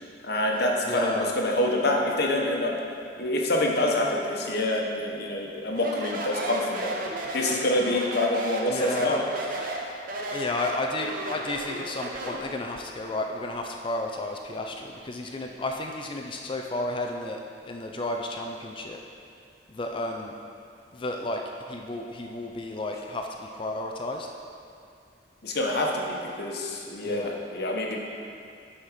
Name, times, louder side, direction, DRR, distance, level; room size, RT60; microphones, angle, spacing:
voice 1, 0.2-2.7 3.2-6.9 7.3-9.2 25.4-28.0, left 1 dB, 60° left, 0 dB, 1.0 m, -26 dB
voice 2, 0.8-1.4 8.7-9.9 10.2-17.4 17.7-19.0 19.7-20.3 20.9-21.4 21.7-24.3 27.0-27.3, left 2 dB, 25° left, 2 dB, 0.4 m, -32 dB
Speech, 5.7-12.5, right 2 dB, 50° right, 0.8 m, -34 dB
10.5 x 4.3 x 5.0 m, 2.4 s
head